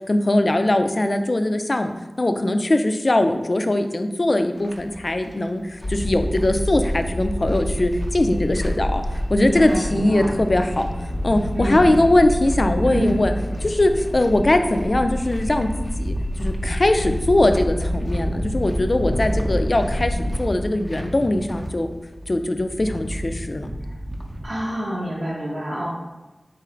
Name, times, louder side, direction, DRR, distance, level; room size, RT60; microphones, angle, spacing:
voice 1, 0.1-1.9 2.2-9.0 9.3-10.9 11.2-13.3 13.6-21.9 22.3-23.7, left 1 dB, 55° left, 7 dB, 0.3 m, -21 dB
sound 1, 4.6-24.5, equal, 40° right, 0.6 m, -35 dB
sound 2, 5.8-20.4, equal, 80° left, 0.8 m, -27 dB
voice 2, 9.4-10.4 11.5-12.0 12.9-13.3 23.9-24.0 24.4-25.9, equal, 85° right, -7 dB, 0.7 m, -27 dB
3.8 x 2.5 x 4.3 m, 1.1 s
wide cardioid pair, 45°, 0 cm